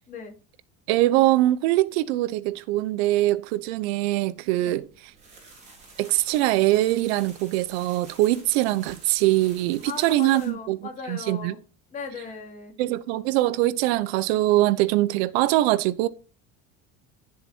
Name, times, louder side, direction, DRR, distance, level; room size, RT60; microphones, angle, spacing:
voice 1, 0.9-4.8 6.0-10.8 11.1-11.5 12.8-16.1, right 16 dB, 80° right, 1.0 m, -22 dB
sound 1, 4.7-10.5, right 3 dB, 20° right, 4.9 m, -49 dB
voice 2, 9.8-11.6 11.9-12.7, left 5 dB, 25° left, 3.4 m, -38 dB
11.5 x 7.6 x 4.5 m
cardioid pair, 170°, 31 cm